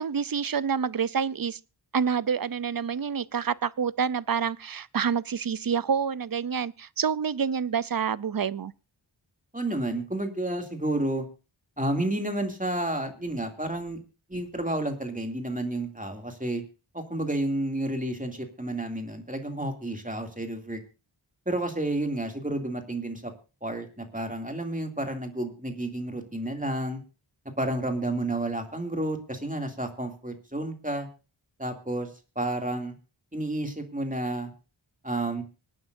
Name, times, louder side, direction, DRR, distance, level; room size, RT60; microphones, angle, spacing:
voice 1, 0.0-1.6 1.9-8.7, right 6 dB, 50° right, 0.5 m, -28 dB
voice 2, 9.5-11.3 11.8-14.0 14.3-16.6 16.9-20.8 21.5-23.3 23.6-27.0 27.6-31.1 31.6-32.1 32.4-32.9 33.3-34.5 35.0-35.4, right 1 dB, 15° right, 2.5 m, -30 dB
25.0 x 9.3 x 2.6 m
wide cardioid pair, 45°, 47 cm